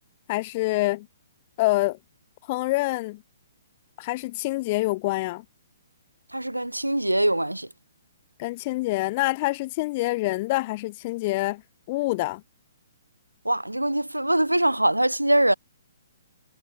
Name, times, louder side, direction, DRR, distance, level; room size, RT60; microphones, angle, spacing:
voice 1, 0.3-1.1 1.6-2.0 2.5-3.2 4.0-5.4 8.4-11.6 11.9-12.4, left 21 dB, 35° left, 0.7 m, -26 dB
voice 2, 6.3-7.7 13.5-15.5, right 1 dB, 85° right, 0.5 m, -23 dB
figure-of-eight pair, 125°, 0 cm